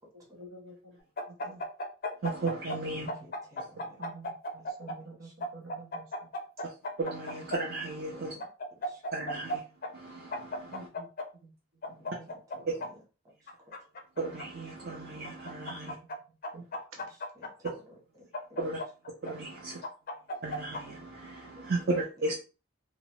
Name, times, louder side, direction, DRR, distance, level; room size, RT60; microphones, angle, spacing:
voice 1, 0.1-1.0 1.3-1.6 3.0-3.2 4.0-6.3 10.6-11.1 11.3-12.3 15.7-16.2 16.5-16.7, right 2 dB, 85° right, 2 dB, 0.8 m, -49 dB
sound 1, 1.2-2.8 3.1-5.0 5.4-7.6 8.4-9.6 9.8-9.9 10.3-11.3 11.8-12.9 13.5-14.4 15.2-16.2 16.4-17.7 18.3-19.3 19.8-20.8, left 1 dB, 45° left, 0.4 m, -35 dB
voice 2, 2.2-3.1 7.0-8.3 9.1-9.6 9.9-10.9 14.2-16.0 18.6-18.8 19.2-19.8 20.4-22.3, right 2 dB, 55° right, -2 dB, 0.5 m, -35 dB
voice 3, 3.2-4.1 8.1-8.4 8.9-9.0 12.0-12.9, left 1 dB, 15° right, -3 dB, 1.0 m, -54 dB
2.8 x 2.0 x 2.9 m, 0.33 s
head